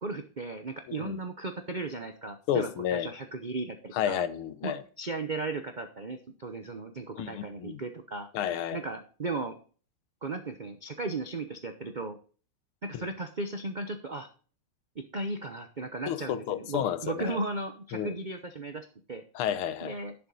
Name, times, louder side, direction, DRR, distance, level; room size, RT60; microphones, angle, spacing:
voice 1, 0.0-4.2 4.6-8.3 8.7-9.6 10.2-12.2 12.8-14.3 15.0-19.2 19.8-20.1, right 3 dB, 65° right, 0.4 m, -36 dB
voice 2, 2.5-3.1 3.9-4.8 7.2-7.8 8.3-8.8 13.0-13.1 16.1-17.4 17.9-18.1 19.3-20.0, left 10 dB, 85° left, 1.7 m, -31 dB
10.5 x 7.3 x 4.0 m
omnidirectional pair, 2.3 m